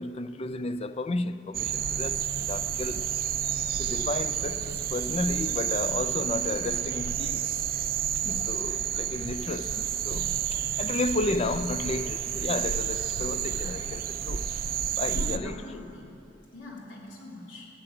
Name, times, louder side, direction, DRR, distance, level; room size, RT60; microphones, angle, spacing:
voice 1, 0.0-3.1 3.8-7.5 8.2-14.5 15.0-15.5, left 2 dB, 30° left, 0.4 m, -33 dB
sound 1, 1.5-15.4, right 9 dB, 50° right, 0.5 m, -30 dB
voice 2, 15.1-16.1 16.5-17.7, left 2 dB, 80° left, 3.0 m, -42 dB
13.5 x 7.8 x 9.2 m
head